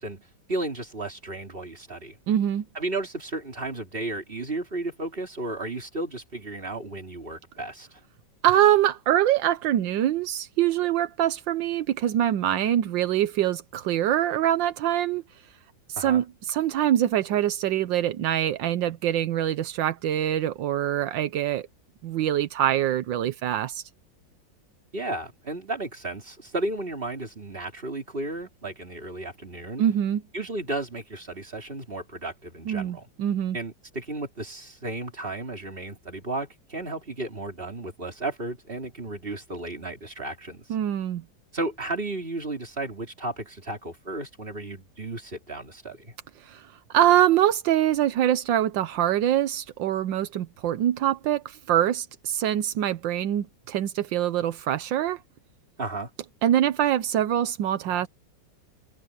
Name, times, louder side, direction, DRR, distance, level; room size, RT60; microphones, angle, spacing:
voice 1, 0.0-2.2 2.7-8.0 16.0-16.2 24.9-29.8 30.3-33.1 33.5-40.7 41.5-46.1 55.8-56.1, right 2 dB, 30° right, 3.6 m, -34 dB
voice 2, 2.3-2.6 8.4-15.2 15.9-21.7 22.0-23.8 29.8-30.2 32.7-33.6 40.7-41.2 46.4-46.7 46.9-55.2 56.4-58.1, right 11 dB, 85° right, 1.5 m, -24 dB
omnidirectional pair, 2.0 m